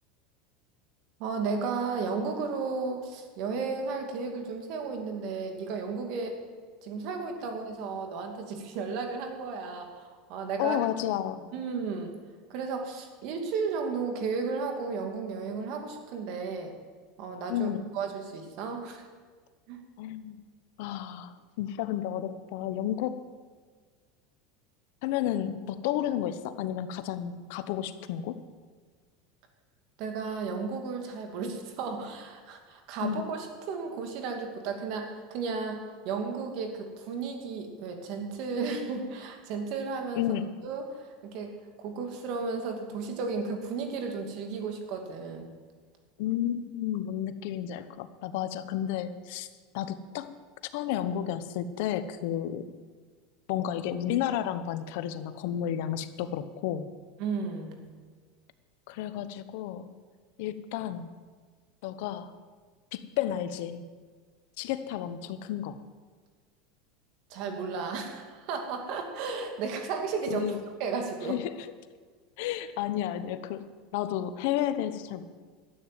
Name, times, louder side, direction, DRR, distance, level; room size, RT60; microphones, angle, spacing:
voice 1, 1.2-6.4 6.8-10.8 11.5-12.1 12.5-16.7 17.2-17.7 17.9-19.1 19.7-19.8 30.0-40.2 40.6-45.5 57.2-57.9 67.3-70.5 70.8-71.4, right 4 dB, 60° right, 4 dB, 2.5 m, -34 dB
voice 2, 10.6-11.5 17.5-17.9 20.0-20.4 20.8-23.3 25.0-28.4 33.0-33.2 40.1-40.5 46.2-49.5 49.7-50.4 50.6-52.6 53.5-56.9 58.9-59.9 60.4-61.2 61.8-62.4 62.9-63.9 64.6-65.8 70.3-70.6 71.2-71.7 72.4-75.2, left 11 dB, 70° left, 12 dB, 0.9 m, -32 dB
12.5 x 9.1 x 7.6 m, 1.5 s
supercardioid pair, 125°, 0 cm